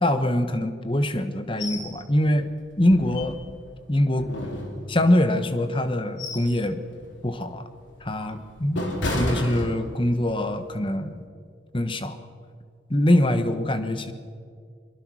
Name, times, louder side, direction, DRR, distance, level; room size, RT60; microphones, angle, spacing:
voice 1, 0.0-2.5 2.8-3.4 3.9-4.3 4.9-6.8 7.2-7.6 8.0-8.8 9.1-11.3 11.7-12.2 12.9-14.1, left 1 dB, 25° left, 9 dB, 1.2 m, -23 dB
sound 1, 1.6-1.9 2.3-2.4 2.9-3.7 4.2-5.2 5.8-6.6 7.0-7.2 7.8-10.2 10.6-10.8, left 1 dB, 80° left, 4.0 m, -32 dB
23.0 x 22.5 x 6.3 m, 2.2 s
head